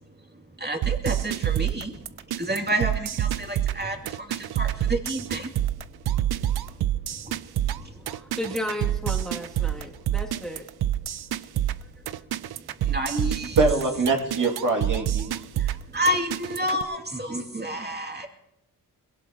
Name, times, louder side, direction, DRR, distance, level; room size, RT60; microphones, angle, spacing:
voice 1, 0.6-2.0 2.4-5.5 7.2-7.3 7.6-7.9 12.8-13.6 15.6-18.3, right 1 dB, 25° right, 3 dB, 2.4 m, -29 dB
sound 1, 0.8-16.8, right 12 dB, 85° right, 0.6 m, -27 dB
voice 2, 7.9-10.7 12.1-12.2, left 1 dB, ahead, -1 dB, 2.2 m, -34 dB
voice 3, 13.6-15.3, right 3 dB, 55° right, 1 dB, 2.2 m, -23 dB
22.5 x 17.0 x 2.8 m, 0.88 s
cardioid pair, 60°, 37 cm